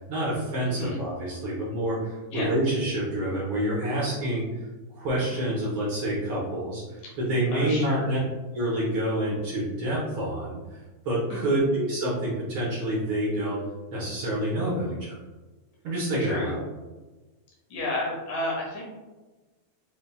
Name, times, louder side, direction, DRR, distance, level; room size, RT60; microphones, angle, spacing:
voice 1, 0.1-4.4 4.9-6.8 7.2-8.2 8.5-10.6 11.0-13.6 13.9-15.2 15.8-16.6, right 1 dB, 75° right, -7 dB, 1.2 m, -27 dB
voice 2, 0.6-1.0 2.3-2.5 7.0-7.1 7.5-8.2 11.3-11.7 16.2-16.6 17.7-18.8, left 1 dB, 90° left, -4 dB, 2.7 m, -32 dB
6.9 x 2.7 x 2.2 m, 1.2 s
omnidirectional pair, 3.6 m